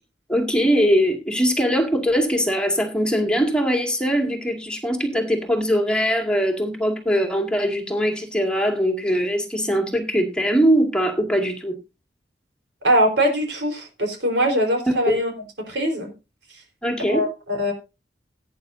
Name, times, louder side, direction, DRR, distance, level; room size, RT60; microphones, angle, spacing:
voice 1, 0.3-11.8 16.8-17.2, equal, 5° left, 2 dB, 2.2 m, -21 dB
voice 2, 12.8-15.3 15.7-16.1 16.5-16.6 17.1-17.7, equal, 85° right, 3 dB, 4.2 m, -22 dB
17.0 x 9.3 x 2.7 m, 0.27 s
head